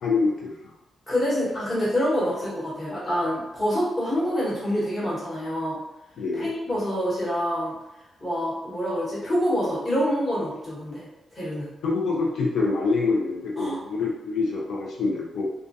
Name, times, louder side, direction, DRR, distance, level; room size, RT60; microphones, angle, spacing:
voice 1, 0.0-0.7 6.2-6.5 11.8-15.5, left 3 dB, 75° left, -3 dB, 0.4 m, -25 dB
voice 2, 1.1-5.8 6.3-7.7 8.2-11.0 11.3-11.7 13.6-13.8, equal, 20° left, -8 dB, 0.9 m, -26 dB
2.3 x 2.1 x 2.6 m, 0.95 s
wide cardioid pair, 150°, 0 cm